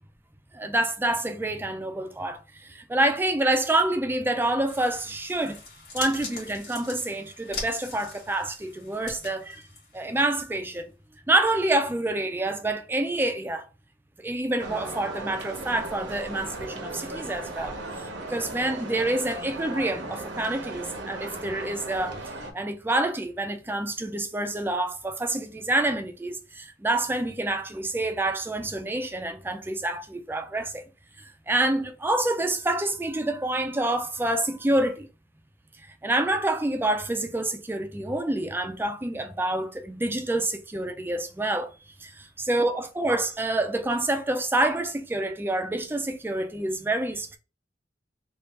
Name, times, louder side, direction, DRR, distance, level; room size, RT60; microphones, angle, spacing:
voice 1, 0.5-5.6 5.9-9.7 9.9-10.9 11.3-13.7 14.2-30.8 31.2-35.1 36.0-41.7 42.0-47.4, right 2 dB, 10° right, 0.4 m, -27 dB
sound 1, 4.7-10.3 10.7-10.8, left 3 dB, 55° left, 1.3 m, -41 dB
sound 2, 14.6-22.5, right 2 dB, 75° right, 0.9 m, -37 dB
3.3 x 2.4 x 2.9 m
head